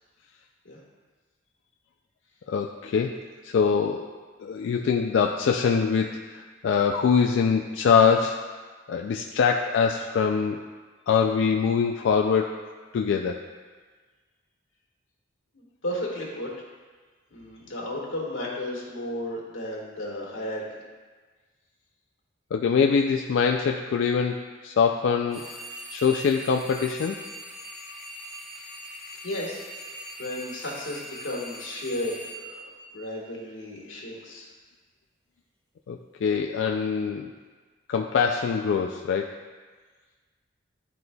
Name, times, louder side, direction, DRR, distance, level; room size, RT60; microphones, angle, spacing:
voice 1, 2.5-4.1 4.4-8.5 8.9-10.6 11.1-12.6 12.9-13.4 22.5-25.4 25.9-27.2 35.9-37.3 37.9-39.4, left 6 dB, 65° left, 3 dB, 0.3 m, -24 dB
voice 2, 15.5-16.5 17.3-20.6 29.2-29.9 30.2-32.3 32.9-34.5, left 1 dB, 85° left, -3 dB, 1.5 m, -33 dB
sound 1, 25.3-33.5, equal, ahead, 0.8 m, -41 dB
11.0 x 4.0 x 2.2 m, 1.4 s
head